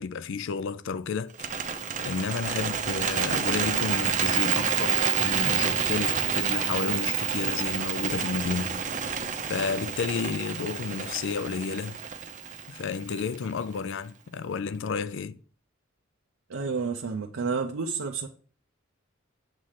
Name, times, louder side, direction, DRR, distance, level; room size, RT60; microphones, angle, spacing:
voice 1, 0.0-1.7 2.0-8.8 9.4-12.0 12.7-15.4, left 5 dB, 65° left, 0.4 m, -31 dB
Bird, 1.3-13.5, right 7 dB, 40° right, 0.6 m, -28 dB
voice 2, 16.5-18.3, right 5 dB, 90° right, 0.6 m, -30 dB
7.5 x 3.2 x 5.7 m
head